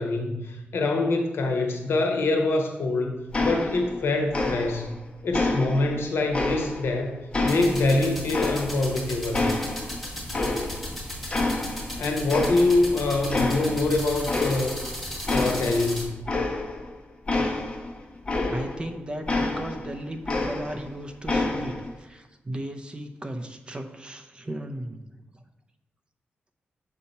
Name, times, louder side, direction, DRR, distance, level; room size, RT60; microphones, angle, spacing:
voice 1, 0.0-4.9 5.2-7.2 7.4-9.5 12.0-14.8 15.3-16.3, left 2 dB, 70° left, 3 dB, 0.9 m, -25 dB
sound 1, 3.3-4.0 4.3-5.0 5.3-7.0 7.3-9.0 9.3-10.9 11.3-12.0 12.3-12.9 13.3-13.9 14.2-14.9 15.3-18.9 19.3-20.9 21.3-21.9, left 2 dB, 25° left, 0.8 m, -28 dB
sound 2, 7.5-16.0, equal, ahead, 1.4 m, -36 dB
voice 2, 18.5-25.0, right 1 dB, 25° right, 5 dB, 0.5 m, -36 dB
6.8 x 2.8 x 5.3 m, 1.0 s
wide cardioid pair, 115°, 4 cm